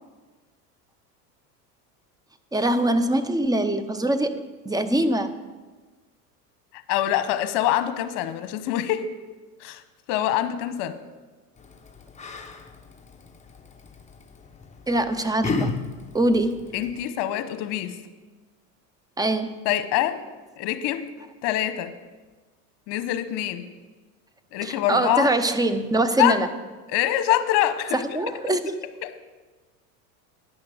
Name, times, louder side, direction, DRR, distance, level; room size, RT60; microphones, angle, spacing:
voice 1, 2.5-4.4 4.7-5.4 14.9-15.7 16.1-16.7 19.2-19.6 24.6-26.5 27.9-28.8, right 1 dB, 10° right, 10 dB, 0.5 m, -23 dB
voice 2, 6.9-9.1 9.6-9.8 10.1-11.0 16.7-18.0 19.6-20.2 20.6-21.1 21.4-21.9 22.9-23.7 24.5-25.3 26.2-26.4 26.9-28.2 29.0-29.1, left 13 dB, 55° left, 10 dB, 1.1 m, -25 dB
Yell, 11.6-17.1, left 3 dB, 15° left, 0.9 m, -34 dB
10.5 x 5.7 x 7.8 m, 1.3 s
hypercardioid pair, 95°, 48 cm